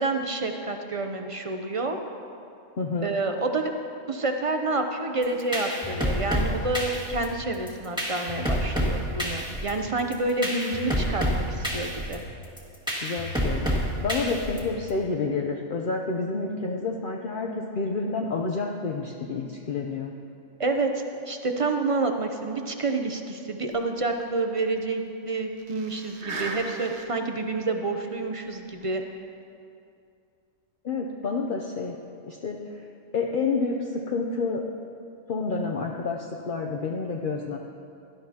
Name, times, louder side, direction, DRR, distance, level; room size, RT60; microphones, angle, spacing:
voice 1, 0.0-2.0 3.0-3.7 4.1-12.2 20.6-29.0, right 3 dB, 35° right, 5 dB, 0.6 m, -28 dB
voice 2, 2.8-3.1 13.0-13.7 14.0-20.1 30.8-31.9 32.3-32.6 33.1-34.6 35.3-37.6, left 4 dB, 50° left, 0 dB, 0.8 m, -29 dB
sound 1, 5.2-14.9, equal, 5° right, 1.7 m, -29 dB
sound 2, 23.7-23.8 24.1-24.2 24.6-24.7 25.6-27.3 27.8-27.9 28.8-29.0, right 3 dB, 65° right, 1.3 m, -37 dB
17.0 x 12.0 x 2.9 m, 2.5 s
omnidirectional pair, 1.3 m